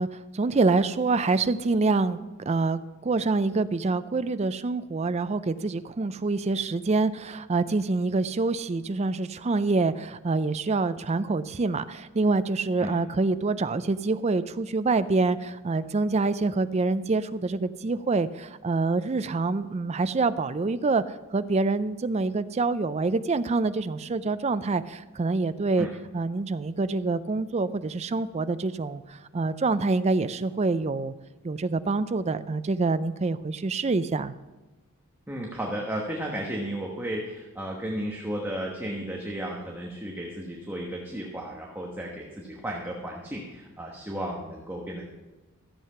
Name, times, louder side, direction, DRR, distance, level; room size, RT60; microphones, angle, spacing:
voice 1, 0.0-2.2 2.5-25.9 26.1-31.1 31.4-34.3, right 3 dB, 30° right, 13 dB, 0.4 m, -26 dB
voice 2, 35.3-45.1, right 1 dB, 10° right, -2 dB, 1.2 m, -34 dB
14.0 x 7.7 x 5.6 m, 1.1 s
head